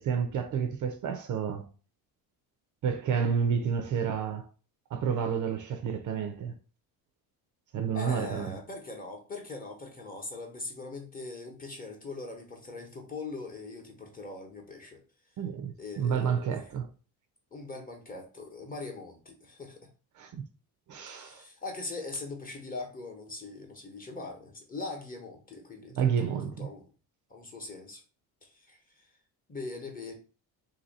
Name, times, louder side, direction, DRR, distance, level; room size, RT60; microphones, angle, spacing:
voice 1, 0.0-1.7 2.8-4.5 4.9-6.6 7.7-8.6 15.4-16.9 20.2-20.4 20.9-21.4 26.0-26.7, right 7 dB, 50° right, 0.6 m, -30 dB
voice 2, 7.9-15.0 15.8-16.6 17.5-19.9 21.1-26.9 27.3-28.0 28.4-29.1 29.5-30.2, left 3 dB, 20° left, 1.0 m, -41 dB
2.8 x 2.8 x 4.0 m
cardioid pair, 135°, 40 cm